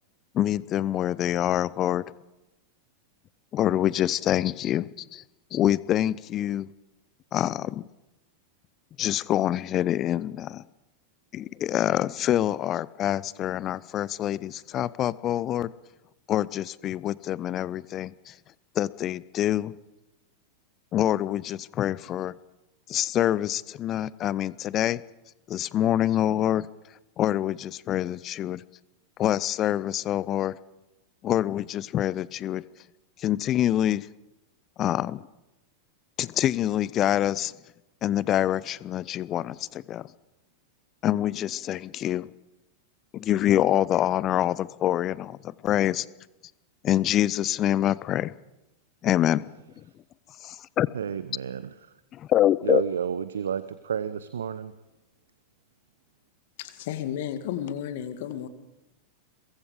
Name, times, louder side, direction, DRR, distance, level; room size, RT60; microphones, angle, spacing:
voice 1, 0.3-2.1 3.5-5.2 5.5-6.7 7.3-7.9 9.0-10.6 11.3-15.7 16.3-18.4 18.7-19.7 20.9-22.3 22.9-25.0 25.5-26.7 27.2-28.6 29.2-30.6 31.2-32.6 33.2-34.1 34.8-35.3 36.2-37.5 38.0-40.1 41.0-42.3 43.1-46.1 46.8-48.3 49.0-49.5 49.8-49.9 50.4-50.9 52.1-52.8, left 12 dB, 30° left, 21 dB, 0.7 m, -26 dB
voice 2, 50.9-51.9 52.6-54.7, right 8 dB, 65° right, 14 dB, 0.8 m, -31 dB
voice 3, 56.6-58.5, left 10 dB, 50° left, 10 dB, 2.0 m, -33 dB
23.0 x 22.5 x 5.1 m, 0.97 s
figure-of-eight pair, 90°, 0 cm